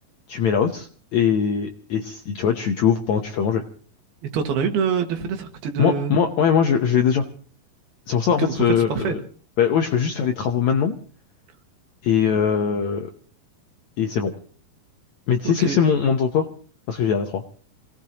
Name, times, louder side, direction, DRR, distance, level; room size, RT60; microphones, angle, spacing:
voice 1, 0.3-3.6 5.8-7.3 8.1-9.2 9.6-10.9 12.0-13.1 14.0-14.3 15.3-16.5 16.9-17.4, left 7 dB, 75° left, 5 dB, 1.7 m, -21 dB
voice 2, 4.3-6.2 8.4-8.5 8.9-9.2 15.4-15.8, right 6 dB, 80° right, 5 dB, 3.6 m, -25 dB
27.5 x 18.0 x 2.9 m, 0.44 s
omnidirectional pair, 4.4 m